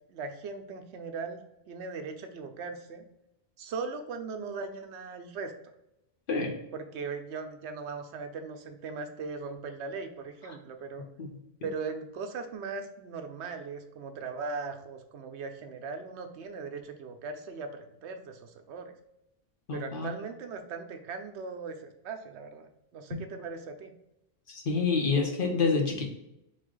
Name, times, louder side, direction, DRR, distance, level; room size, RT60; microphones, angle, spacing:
voice 1, 0.1-1.4 1.7-3.0 3.6-5.5 6.7-11.1 11.6-18.9 19.7-23.9, right 4 dB, 85° right, 6 dB, 0.9 m, -39 dB
voice 2, 19.7-20.1 24.5-26.1, left 4 dB, 55° left, 1 dB, 1.0 m, -27 dB
3.8 x 3.3 x 3.7 m, 0.86 s
omnidirectional pair, 1.1 m